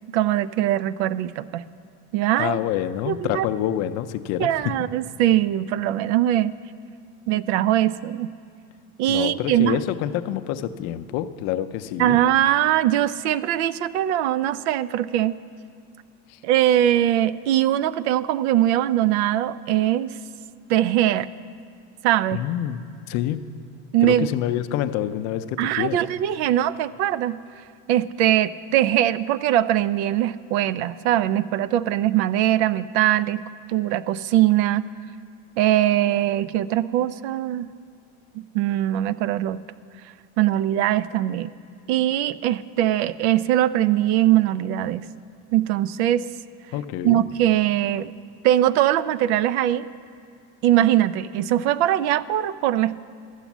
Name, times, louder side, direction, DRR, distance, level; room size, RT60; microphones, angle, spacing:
voice 1, 0.1-1.6 2.1-2.6 3.1-3.5 4.4-6.6 7.3-8.3 9.0-9.8 12.0-15.4 16.4-20.1 20.7-21.3 22.0-22.4 23.9-24.3 25.6-27.4 27.9-33.4 33.7-34.9 35.6-37.7 38.4-39.6 40.4-41.5 41.9-45.0 45.5-46.2 47.0-48.1 48.4-49.9 50.6-52.9, right 12 dB, 75° right, 17 dB, 0.5 m, -21 dB
voice 2, 2.4-4.7 9.1-12.2 16.3-16.4 22.3-23.4 24.0-26.0 46.7-47.2, left 12 dB, 50° left, 10 dB, 0.5 m, -27 dB
13.0 x 8.1 x 7.2 m, 2.2 s
supercardioid pair, 140°, 33 cm